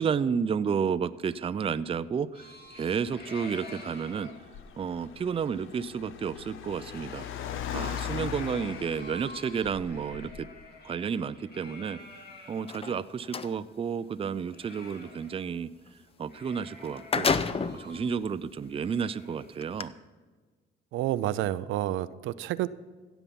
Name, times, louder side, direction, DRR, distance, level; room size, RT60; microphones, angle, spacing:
voice 1, 0.0-4.3 4.8-7.3 7.7-10.5 10.8-15.7 16.2-17.3 17.7-19.9, right 6 dB, 30° right, 14 dB, 0.4 m, -31 dB
sound 1, 2.3-12.8 13.1-13.2 13.5-15.6 15.9-16.0 16.3-19.5, left 3 dB, 55° left, 2.4 m, -49 dB
Car, 2.7-10.6, left 9 dB, 80° left, 0.8 m, -40 dB
sound 2, 12.6-13.5 16.4-16.5 16.8-17.9 18.6-18.7 19.6-19.8, left 5 dB, 30° left, 0.6 m, -29 dB
voice 2, 20.9-22.7, right 14 dB, 85° right, 15 dB, 0.4 m, -29 dB
16.0 x 7.1 x 5.4 m, 1.4 s
cardioid pair, 90°, 20 cm